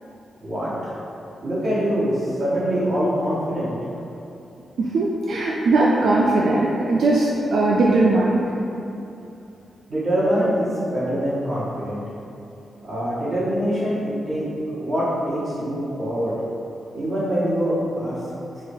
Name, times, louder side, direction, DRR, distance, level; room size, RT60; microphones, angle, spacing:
voice 1, 0.4-0.9 1.4-3.8 9.9-12.0 12.8-14.5 14.8-16.4 16.9-18.2, equal, 35° right, -11 dB, 1.5 m, -24 dB
voice 2, 4.8-8.5, right 2 dB, 75° right, -4 dB, 0.3 m, -19 dB
4.8 x 2.3 x 2.6 m, 2.8 s
wide cardioid pair, 115°, 0 cm